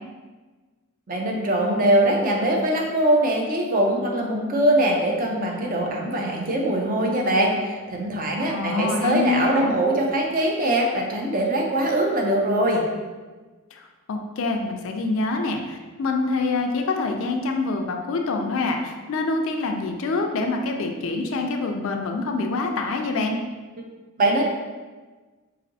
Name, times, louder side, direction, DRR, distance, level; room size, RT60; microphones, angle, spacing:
voice 1, 1.1-12.8 24.2-24.4, right 1 dB, 40° right, 0 dB, 0.5 m, -22 dB
voice 2, 8.5-9.8 13.7-13.8 14.1-23.4, left 3 dB, 65° left, 3 dB, 0.4 m, -25 dB
4.1 x 2.6 x 2.6 m, 1.3 s
head